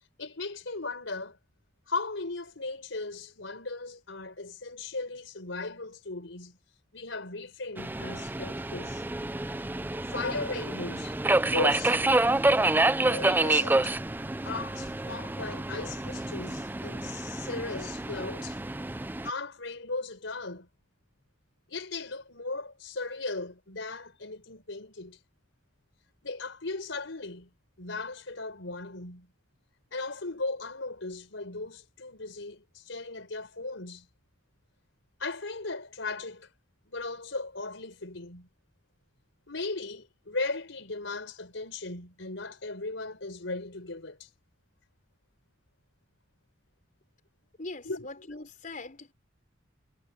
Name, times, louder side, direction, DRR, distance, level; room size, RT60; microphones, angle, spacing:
voice 1, 0.2-1.4 1.9-6.6 6.9-9.0 10.1-11.2 11.4-12.0 13.1-13.9 14.4-18.6 19.2-20.7 21.7-25.2 26.2-27.5 27.8-29.3 29.9-34.1 35.2-36.5 36.9-38.5 39.5-44.3 47.8-48.3, left 3 dB, 80° left, 4.4 m, -37 dB
Subway metro underground, 7.8-19.3, right 2 dB, 10° right, 0.5 m, -28 dB
voice 2, 47.6-49.1, left 2 dB, 45° left, 4.6 m, -41 dB
head